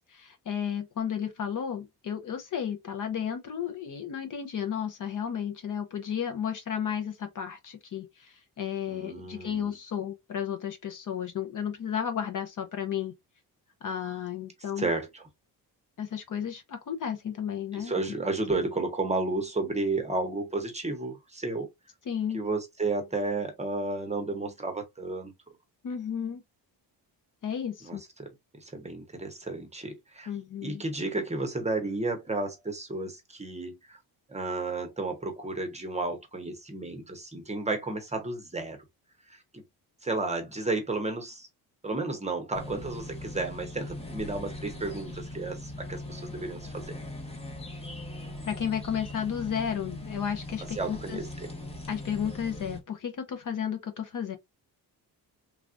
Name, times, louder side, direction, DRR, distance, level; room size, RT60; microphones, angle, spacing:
voice 1, 0.1-13.1 13.8-14.9 16.0-18.2 22.1-22.4 25.8-26.4 27.4-28.0 30.3-30.8 48.4-51.2 51.9-54.4, left 8 dB, 50° left, 0.8 m, -33 dB
voice 2, 8.9-9.7 14.8-15.2 17.7-21.7 22.3-25.3 27.8-28.0 28.5-30.3 30.6-34.0 34.3-38.8 39.3-39.6 40.0-41.5 41.8-47.0 50.8-51.3, right 3 dB, 15° right, 0.8 m, -32 dB
sound 1, 42.5-52.8, left 1 dB, 15° left, 0.8 m, -40 dB
3.4 x 2.3 x 2.5 m
cardioid pair, 120°, 42 cm